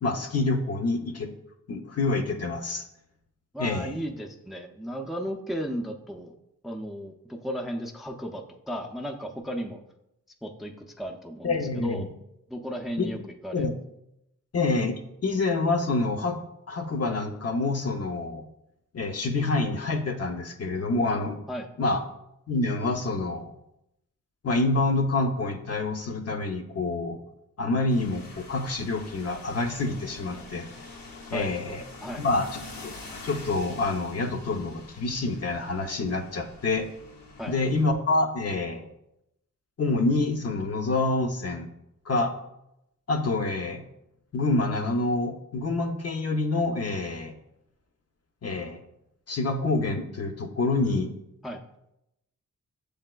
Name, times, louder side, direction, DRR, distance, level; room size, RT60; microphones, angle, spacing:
voice 1, 0.0-1.3 1.7-2.8 3.6-3.9 11.4-12.0 13.0-13.2 13.5-13.7 14.5-15.0 15.2-16.4 16.7-18.4 18.9-21.4 21.8-22.0 22.5-23.5 24.4-27.2 27.6-30.7 31.3-31.8 32.2-32.9 33.2-36.9 37.5-38.8 39.8-41.7 42.1-42.3 43.1-43.8 44.3-47.3 48.4-48.8 49.3-51.1, left 2 dB, 45° left, 5 dB, 0.7 m, -27 dB
voice 2, 3.5-6.3 6.6-9.8 10.4-12.1 12.5-13.7 21.5-21.7 31.3-32.2 37.4-37.5 51.4-51.6, equal, ahead, 3 dB, 0.5 m, -35 dB
sound 1, 27.9-37.8, left 2 dB, 85° left, 0.9 m, -45 dB
6.9 x 3.2 x 2.2 m, 0.84 s
cardioid pair, 50°, 33 cm